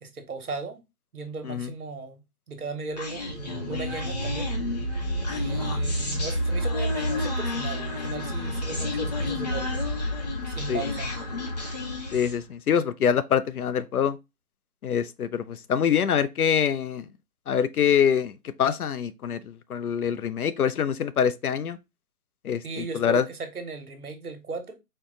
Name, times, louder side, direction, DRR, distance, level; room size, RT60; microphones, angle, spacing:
voice 1, 0.0-0.8 1.1-4.5 5.3-9.9 10.5-11.1 22.6-24.7, right 4 dB, 70° right, 1.2 m, -37 dB
Human voice, 3.0-12.4, left 1 dB, 30° left, 0.7 m, -29 dB
voice 2, 12.1-14.2 14.8-17.0 17.5-18.3 18.6-19.4 19.7-21.8 22.4-23.2, left 8 dB, 75° left, 0.6 m, -24 dB
4.5 x 2.2 x 3.6 m
hypercardioid pair, 160°, 45 cm